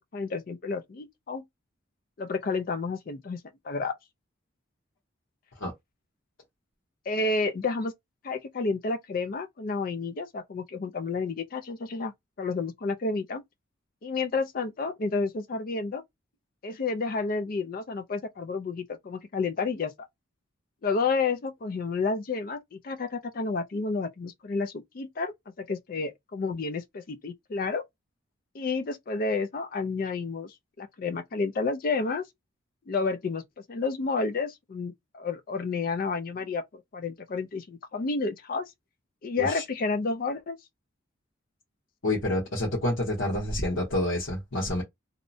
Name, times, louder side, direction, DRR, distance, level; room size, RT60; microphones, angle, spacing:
voice 1, 0.1-1.4 2.2-3.9 7.1-7.9 8.2-13.4 14.0-16.0 16.6-20.1 20.8-27.8 28.5-32.3 32.9-33.4 33.7-38.7 39.2-40.6, left 4 dB, 45° left, 0.4 m, -30 dB
voice 2, 42.0-44.8, left 1 dB, 85° left, 0.9 m, -28 dB
2.7 x 2.0 x 2.6 m
head